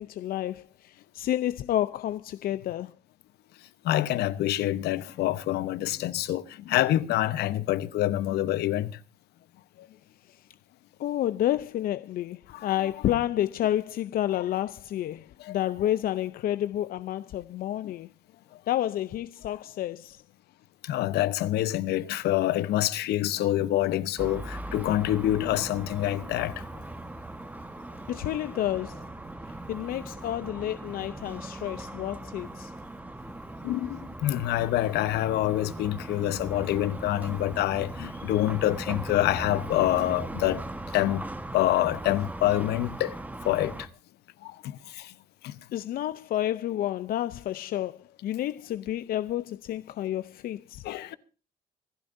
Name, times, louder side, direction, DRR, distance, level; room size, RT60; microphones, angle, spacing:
voice 1, 0.0-2.9 11.0-18.1 18.7-20.2 28.1-29.0 29.7-32.7 45.7-50.8, left 12 dB, 60° left, 0.6 m, -30 dB
voice 2, 3.8-8.9 12.5-12.7 14.3-14.4 15.4-15.5 17.8-17.9 20.8-26.6 33.6-40.6 40.9-41.3 41.5-43.2 43.4-43.9 44.4-44.5 44.9-45.1 45.4-45.5 50.8-51.2, left 14 dB, 75° left, 1.0 m, -26 dB
sound 1, 24.2-43.9, right 1 dB, 10° right, 1.3 m, -39 dB
26.0 x 12.5 x 2.7 m
cardioid pair, 110°, 17 cm